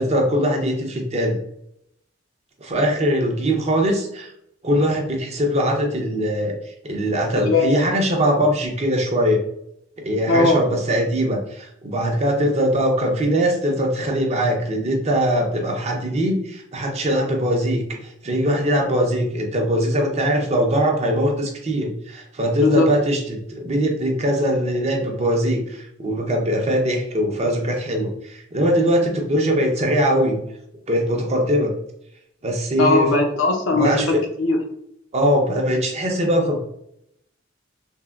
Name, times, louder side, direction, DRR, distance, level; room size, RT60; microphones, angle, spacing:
voice 1, 0.0-1.4 2.6-4.3 4.6-9.4 10.0-30.4 30.9-31.7 32.4-33.1 33.7-34.2 35.1-36.6, equal, 35° right, 2 dB, 0.5 m, -21 dB
voice 2, 10.3-10.6 22.6-22.9 32.8-34.6, left 3 dB, 80° left, 3 dB, 0.5 m, -19 dB
3.4 x 2.1 x 2.3 m, 0.74 s
head